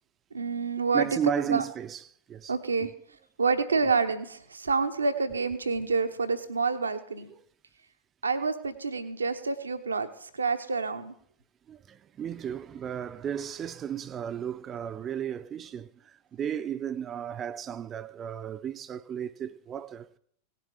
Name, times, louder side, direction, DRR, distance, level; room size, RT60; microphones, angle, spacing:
voice 1, 0.3-1.1 1.5-1.6 2.5-2.9 3.4-7.3 8.2-11.1, right 4 dB, 75° right, 0.9 m, -28 dB
voice 2, 0.9-2.5 2.8-2.9 7.4-7.5 11.7-20.2, right 8 dB, 25° right, 0.6 m, -34 dB
17.5 x 6.9 x 4.9 m
figure-of-eight pair, 90°, 0 cm